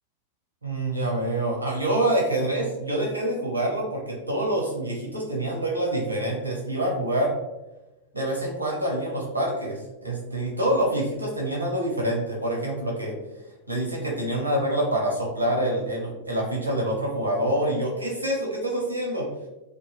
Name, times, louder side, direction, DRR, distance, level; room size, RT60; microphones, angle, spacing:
voice 1, 0.6-7.3 8.1-13.2 13.7-19.3, right 1 dB, 85° right, -2 dB, 0.7 m, -26 dB
2.4 x 2.2 x 3.0 m, 1.0 s
figure-of-eight pair, 90°, 0 cm